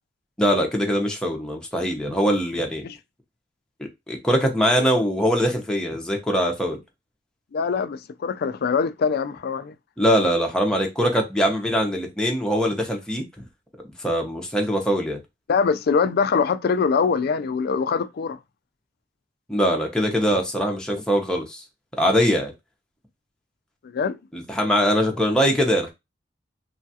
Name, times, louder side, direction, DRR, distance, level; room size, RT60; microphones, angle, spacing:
voice 1, 0.4-2.9 3.8-6.8 10.0-13.2 14.0-15.2 19.5-21.6 22.0-22.5 24.3-25.9, equal, 5° left, 0.6 m, -22 dB
voice 2, 7.5-9.7 15.5-18.4 23.8-24.2, left 5 dB, 55° left, 0.4 m, -23 dB
3.1 x 2.4 x 2.7 m
head